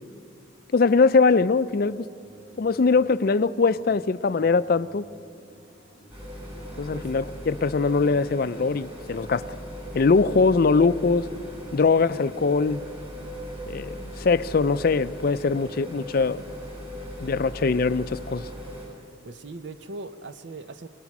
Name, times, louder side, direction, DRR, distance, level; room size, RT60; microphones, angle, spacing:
voice 1, 0.7-2.1 2.6-5.1 6.8-9.4 9.9-11.3 11.7-12.8 13.7-16.4 17.2-18.5, left 4 dB, 50° left, 14 dB, 0.4 m, -22 dB
sound 1, 1.5-17.7, equal, 85° right, 7.6 m, -55 dB
sound 2, 6.1-18.9, equal, 30° right, 7.7 m, -39 dB
voice 2, 19.2-20.9, right 3 dB, 70° right, 11 dB, 0.8 m, -39 dB
25.5 x 18.0 x 6.0 m, 2.4 s
head